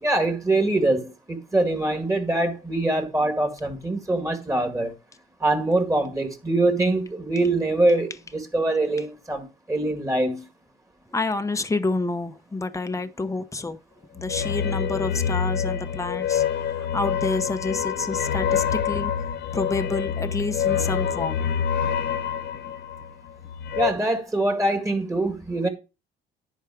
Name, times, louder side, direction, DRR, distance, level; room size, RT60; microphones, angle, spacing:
voice 1, 0.0-4.9 5.4-10.4 23.8-25.7, right 2 dB, 15° right, 2.0 m, -24 dB
voice 2, 11.1-13.8 14.2-16.4 16.9-19.1 19.5-21.4, left 3 dB, 15° left, 0.8 m, -28 dB
sound 1, 14.2-23.9, left 8 dB, 60° left, 0.8 m, -26 dB
10.5 x 4.5 x 4.8 m
cardioid pair, 90°, 20 cm